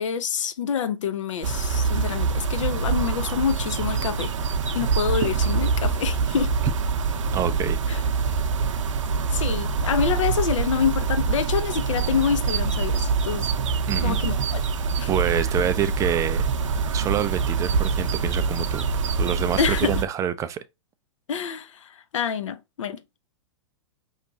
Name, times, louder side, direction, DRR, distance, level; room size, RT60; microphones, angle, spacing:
voice 1, 0.0-4.3 4.7-6.5 7.9-8.0 9.3-13.5 14.0-14.6 15.0-15.1 19.6-20.0 21.3-23.2, left 7 dB, 75° left, 0.7 m, -27 dB
sound 1, 1.4-20.0, right 5 dB, 75° right, 0.6 m, -25 dB
voice 2, 7.3-7.8 13.9-14.3 15.1-16.5 16.9-18.8 19.2-20.6, right 9 dB, 20° right, 0.3 m, -26 dB
4.8 x 3.3 x 2.6 m
hypercardioid pair, 120°, 16 cm